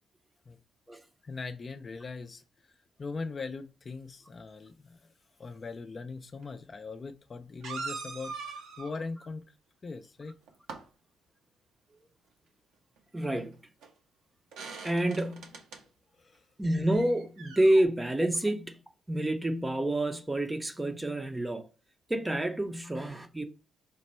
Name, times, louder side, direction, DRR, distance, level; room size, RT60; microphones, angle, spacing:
voice 1, 1.2-2.4 3.0-5.0 5.4-9.5 9.8-10.4 16.2-16.4, left 4 dB, 35° left, 0.4 m, -40 dB
sound 1, 6.4-6.5 7.6-9.0 10.3-10.8 13.4-13.5 13.8-13.9 14.5-15.8 16.9-17.8, right 4 dB, 80° right, 0.9 m, -41 dB
voice 2, 13.1-13.6 14.8-15.6 16.6-18.8 19.1-21.7 22.1-23.4, right 1 dB, 15° right, 0.6 m, -28 dB
5.1 x 2.2 x 4.2 m
cardioid pair, 90°, 0 cm